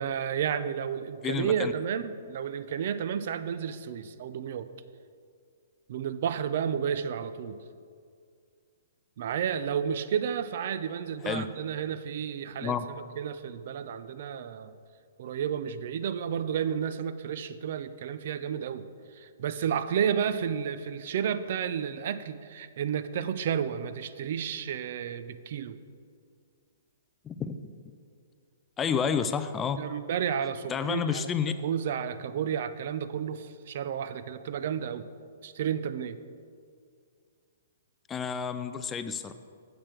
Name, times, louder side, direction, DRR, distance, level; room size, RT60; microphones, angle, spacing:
voice 1, 0.0-4.7 5.9-7.6 9.2-14.7 15.2-18.9 19.1-25.8 29.8-31.3 31.6-35.1 35.4-36.2, right 8 dB, 50° right, 13 dB, 0.4 m, -31 dB
voice 2, 1.2-1.7 11.2-11.6 12.6-12.9 27.2-27.7 28.8-29.8 30.7-31.5 38.1-39.3, left 7 dB, 10° left, 10 dB, 0.3 m, -30 dB
8.6 x 7.6 x 4.5 m, 2.2 s
hypercardioid pair, 165°, 0 cm